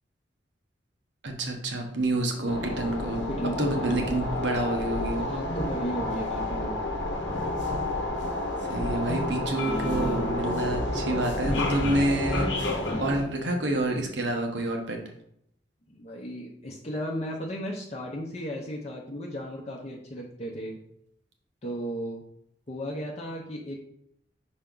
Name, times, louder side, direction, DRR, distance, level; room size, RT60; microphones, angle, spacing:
voice 1, 1.2-3.3 3.6-5.3 8.7-12.5 13.0-15.0, right 1 dB, 75° right, 2 dB, 1.2 m, -28 dB
sound 1, 2.5-13.2, left 1 dB, 85° left, 0.9 m, -30 dB
voice 2, 3.3-4.0 5.1-6.8 15.9-20.8 21.6-22.2 22.7-23.8, equal, 35° left, -2 dB, 0.7 m, -35 dB
5.7 x 4.3 x 3.8 m, 0.74 s
head